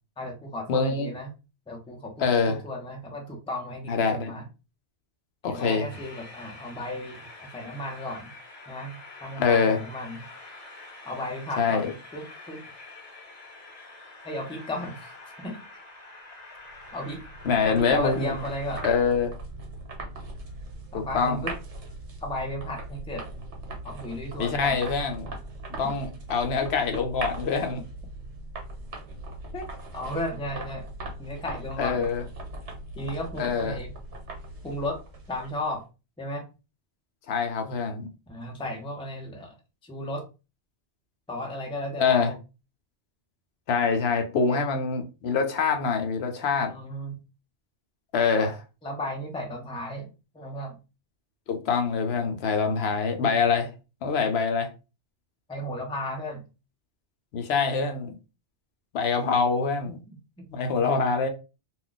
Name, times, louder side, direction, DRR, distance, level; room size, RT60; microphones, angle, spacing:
voice 1, 0.2-1.3 1.7-4.4 5.5-8.3 8.7-10.3 11.0-12.6 14.2-15.6 16.9-17.2 17.6-18.9 20.9-21.6 22.2-23.2 23.8-24.8 29.9-30.9 31.2-32.1 32.9-33.9 34.6-35.0 35.3-35.8 36.2-36.5 38.3-39.6 39.8-40.2 41.3-42.4 44.5-44.6 46.7-47.2 48.3-48.5 48.8-50.1 50.3-50.8 55.5-56.4 59.9-60.5, left 1 dB, 5° left, 0.5 m, -35 dB
voice 2, 0.7-1.1 2.2-2.6 3.9-4.3 5.4-5.9 9.4-9.8 11.6-11.9 17.4-18.3 18.8-19.3 20.9-21.4 24.4-25.3 25.7-27.8 29.5-29.7 31.8-32.2 33.4-33.8 37.3-38.1 42.0-42.3 43.7-46.7 48.1-48.5 51.5-53.7 54.0-54.7 57.3-58.2 58.9-60.0 60.5-61.3, left 5 dB, 70° left, 0.8 m, -25 dB
Train, 5.9-18.9, left 2 dB, 35° left, 0.9 m, -46 dB
sound 1, 16.7-35.7, right 2 dB, 85° right, 1.2 m, -40 dB
2.4 x 2.3 x 3.8 m
omnidirectional pair, 1.1 m